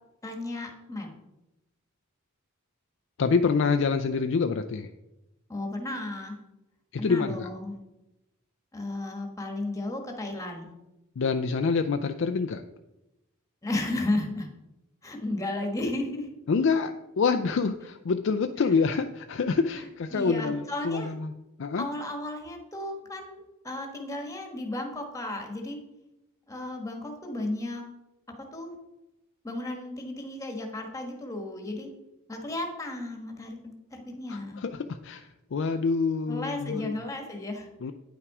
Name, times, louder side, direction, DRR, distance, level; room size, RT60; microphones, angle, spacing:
voice 1, 0.2-1.1 5.5-6.4 7.0-7.8 8.7-10.7 13.6-14.5 15.0-16.3 20.1-21.1 21.8-25.8 26.5-27.8 28.5-28.7 29.4-31.9 32.3-34.6 36.3-37.7, left 2 dB, 15° left, 3 dB, 1.4 m, -34 dB
voice 2, 3.2-4.9 6.9-7.5 11.2-12.6 16.5-21.3 21.6-21.9 34.3-36.9 37.8-37.9, left 5 dB, 60° left, 7 dB, 0.4 m, -26 dB
9.6 x 5.8 x 4.8 m, 0.95 s
head